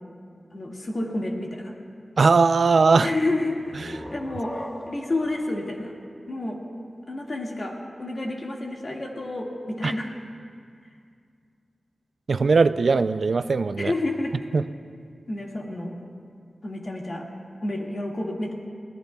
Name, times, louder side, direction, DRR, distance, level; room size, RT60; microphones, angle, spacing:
voice 1, 0.5-1.7 3.0-4.6 4.9-5.9 6.3-6.6 7.1-10.1 13.8-14.4 15.3-16.0 16.6-17.3 17.6-18.5, left 2 dB, 45° left, -1 dB, 1.9 m, -29 dB
voice 2, 2.2-3.1 9.8-9.9 12.3-13.9 14.5-14.6, right 4 dB, 70° right, 11 dB, 0.3 m, -19 dB
sound 1, 3.5-7.0, equal, 5° left, 0.7 m, -41 dB
25.5 x 18.0 x 2.3 m, 2.2 s
wide cardioid pair, 105°, 0 cm